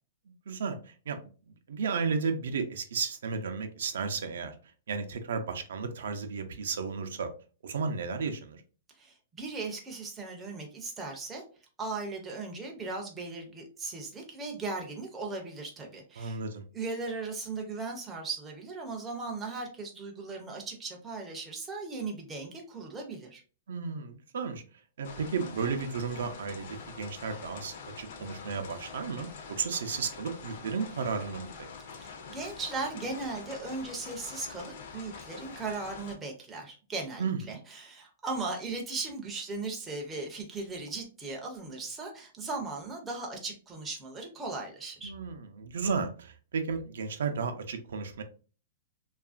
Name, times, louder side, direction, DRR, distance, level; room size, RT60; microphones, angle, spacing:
voice 1, 0.3-1.2 1.7-4.6 4.9-7.3 7.6-8.6 16.2-16.6 23.7-24.6 25.0-31.5 37.2-37.6 45.0-48.2, right 5 dB, 80° right, 0.4 m, -33 dB
voice 2, 8.9-11.4 11.8-16.4 16.7-23.4 31.9-45.1, right 3 dB, 10° right, 0.4 m, -38 dB
sound 1, 25.0-36.2, left 5 dB, 50° left, 0.5 m, -45 dB
2.8 x 2.4 x 2.3 m
hypercardioid pair, 170°, 0 cm